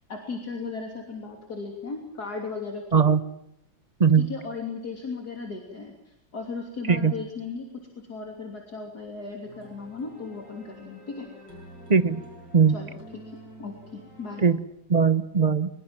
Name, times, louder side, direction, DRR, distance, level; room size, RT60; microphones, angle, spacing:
voice 1, 0.1-3.0 4.2-11.3 12.7-14.4, left 4 dB, 50° left, 2 dB, 3.7 m, -36 dB
sound 1, 9.4-14.4, right 1 dB, 60° right, 7.1 m, -47 dB
voice 2, 14.9-15.7, right 6 dB, 35° right, 13 dB, 0.7 m, -19 dB
23.5 x 22.5 x 7.5 m, 0.81 s
omnidirectional pair, 2.1 m